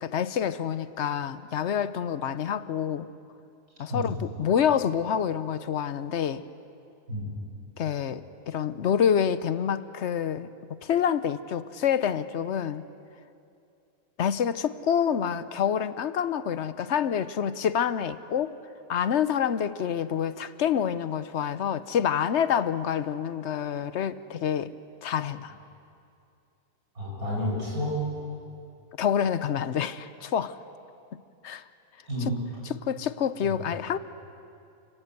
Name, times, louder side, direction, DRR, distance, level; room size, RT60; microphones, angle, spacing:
voice 1, 0.0-3.1 3.8-6.4 7.8-10.5 10.8-12.8 14.2-18.6 18.9-24.7 25.0-25.5 29.0-30.6 31.4-31.6 32.8-34.0, left 8 dB, 60° left, 14 dB, 0.9 m, -27 dB
voice 2, 26.9-28.0 32.1-32.3 33.4-33.6, equal, 85° right, -6 dB, 7.6 m, -30 dB
29.5 x 17.5 x 8.1 m, 2.6 s
omnidirectional pair, 1.5 m